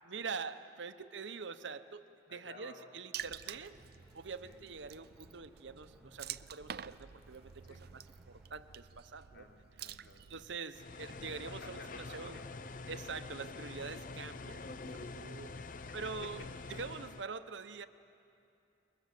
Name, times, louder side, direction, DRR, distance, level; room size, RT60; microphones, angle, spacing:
voice 1, 0.1-3.8 4.1-9.5 10.3-12.4 12.9-15.6 15.9-16.4 16.7-17.9, right 5 dB, 75° right, 11 dB, 0.9 m, -45 dB
voice 2, 2.3-2.9 4.4-4.6 7.6-7.8 9.3-10.4 11.4-12.5 15.5-16.0, left 1 dB, 65° left, 0 dB, 3.2 m, -54 dB
Water / Splash splatter, 3.1-10.6, right 9 dB, 55° right, 0.5 m, -48 dB
sound 1, 3.4-8.5, equal, 5° right, 2.3 m, -65 dB
sound 2, 10.7-17.3, left 3 dB, 45° left, 0.6 m, -46 dB
28.0 x 22.0 x 7.7 m, 2.6 s
head